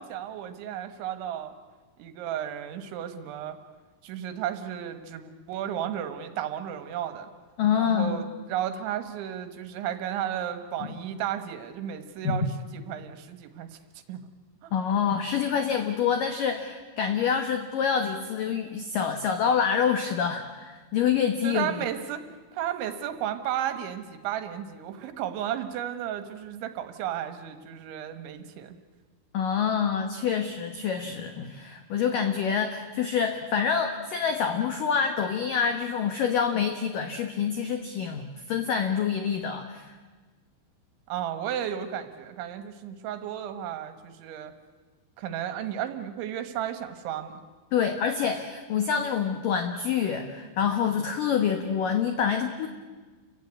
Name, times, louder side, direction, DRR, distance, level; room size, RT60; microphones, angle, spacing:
voice 1, 0.0-1.5 2.0-3.6 4.0-7.3 7.7-12.5 12.7-13.8 14.1-14.2 14.6-14.7 21.4-22.2 22.5-28.8 41.1-44.5 45.2-47.4, right 10 dB, 70° right, 9 dB, 3.4 m, -33 dB
voice 2, 7.6-8.2 12.2-12.4 14.7-21.8 29.3-39.9 47.7-52.7, left 7 dB, 85° left, 6 dB, 1.9 m, -26 dB
29.0 x 16.0 x 9.7 m, 1.4 s
omnidirectional pair, 5.8 m